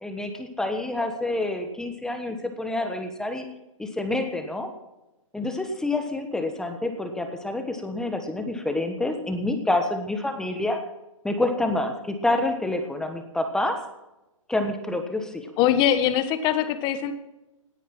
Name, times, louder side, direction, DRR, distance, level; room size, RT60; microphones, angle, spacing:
voice 1, 0.0-3.5 3.8-4.7 5.3-10.8 11.2-13.8 14.5-15.5, left 2 dB, 5° left, 6 dB, 1.3 m, -27 dB
voice 2, 15.6-17.1, left 10 dB, 25° left, 11 dB, 1.4 m, -22 dB
18.0 x 9.8 x 6.1 m, 0.96 s
hypercardioid pair, 150°, 17 cm